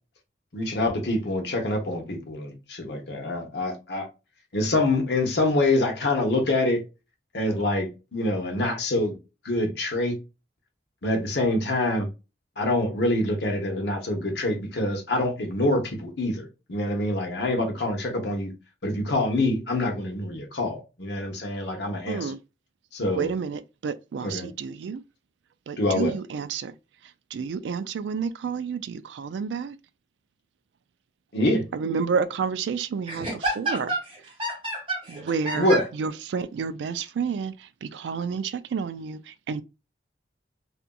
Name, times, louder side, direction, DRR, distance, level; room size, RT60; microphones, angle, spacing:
voice 1, 0.5-4.1 4.5-6.8 7.3-9.1 9.4-10.2 11.0-12.1 12.6-18.5 18.8-22.3 22.9-23.3 24.2-24.5 25.8-26.1 31.3-31.6 35.6-35.8, left 2 dB, 70° left, 0.8 m, -25 dB
voice 2, 22.1-22.4 23.1-25.0 25.7-26.7 27.3-29.8 31.7-33.3 33.6-33.8 35.3-35.7 35.9-37.5 37.8-39.6, right 6 dB, 85° right, 0.3 m, -30 dB
voice 3, 33.1-35.8, right 2 dB, 30° right, 1.3 m, -30 dB
2.8 x 2.5 x 2.2 m
head